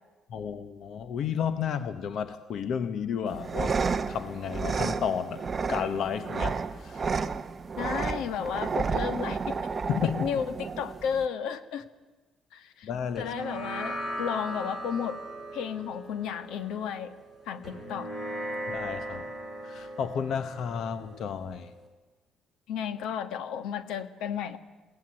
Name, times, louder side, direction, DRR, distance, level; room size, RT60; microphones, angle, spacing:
voice 1, 0.3-3.7 4.1-5.4 5.7-7.0 9.9-10.3 12.8-13.3 18.7-19.3 19.6-21.7, left 7 dB, 55° left, 11 dB, 0.9 m, -32 dB
sound 1, 3.3-11.3, right 5 dB, 25° right, 0.8 m, -31 dB
voice 2, 7.8-9.4 10.0-11.8 12.5-12.9 13.2-15.2 15.5-17.1 17.5-18.1 22.7-24.6, left 8 dB, 85° left, 11 dB, 1.5 m, -33 dB
sound 2, 13.2-21.9, right 1 dB, 10° left, 3.8 m, -38 dB
21.5 x 17.5 x 9.8 m, 1.2 s
cardioid pair, 175°, 0 cm